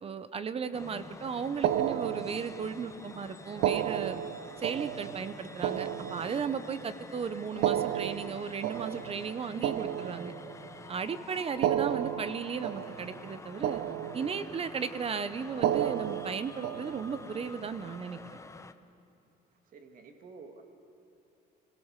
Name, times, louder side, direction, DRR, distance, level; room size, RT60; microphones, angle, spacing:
voice 1, 0.0-4.2 4.6-10.3 10.9-13.8 14.1-18.2, right 6 dB, 35° right, 12 dB, 1.0 m, -35 dB
sound 1, 0.7-18.7, left 3 dB, 15° left, 0.8 m, -48 dB
sound 2, 1.6-2.9 3.5-6.8 7.5-10.8 11.5-13.4 13.6-14.7 15.5-17.3, right 11 dB, 75° right, 0.5 m, -33 dB
voice 2, 19.5-20.6, right 4 dB, 55° right, 5 dB, 2.2 m, -51 dB
27.0 x 17.0 x 6.7 m, 2.6 s
cardioid pair, 110°, 17 cm